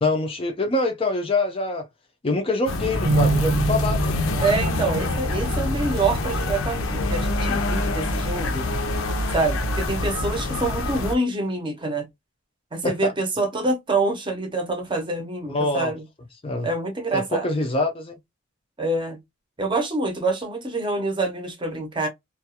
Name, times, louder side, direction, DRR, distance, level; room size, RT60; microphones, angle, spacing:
voice 1, 0.0-1.9 2.2-4.2 12.8-12.9 15.5-15.9 16.4-16.7 17.1-18.2, left 2 dB, 25° left, 0.4 m, -25 dB
sound 1, 2.7-11.1, left 2 dB, 75° left, 0.5 m, -25 dB
sound 2, 3.0-9.3, right 4 dB, 70° right, 0.4 m, -30 dB
voice 2, 4.4-8.6 9.3-12.0 12.7-16.0 16.6-17.5 18.8-19.2 19.6-22.1, right 2 dB, 25° right, 0.7 m, -26 dB
2.3 x 2.2 x 2.7 m
head